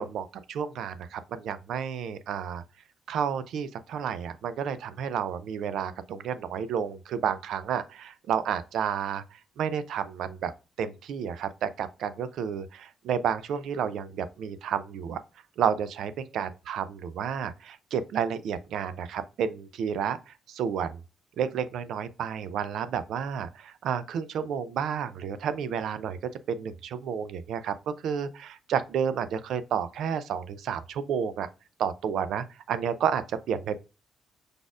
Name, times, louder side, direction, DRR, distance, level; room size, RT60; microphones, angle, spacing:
voice 1, 0.0-2.6 3.1-10.5 10.8-15.2 15.6-21.0 21.4-31.5 31.8-33.8, right 7 dB, 75° right, 0.4 m, -31 dB
5.0 x 4.0 x 2.4 m
cardioid pair, 90°, 0 cm